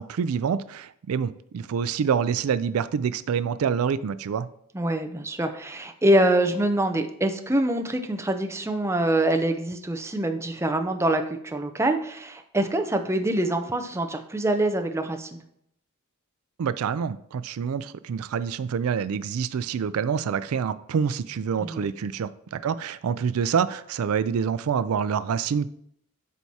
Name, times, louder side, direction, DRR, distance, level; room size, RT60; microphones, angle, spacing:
voice 1, 0.0-4.5 16.6-25.7, right 7 dB, 75° right, 14 dB, 0.3 m, -27 dB
voice 2, 4.7-15.4 21.6-21.9, right 1 dB, 10° right, 5 dB, 0.6 m, -25 dB
12.5 x 4.6 x 2.8 m, 0.70 s
head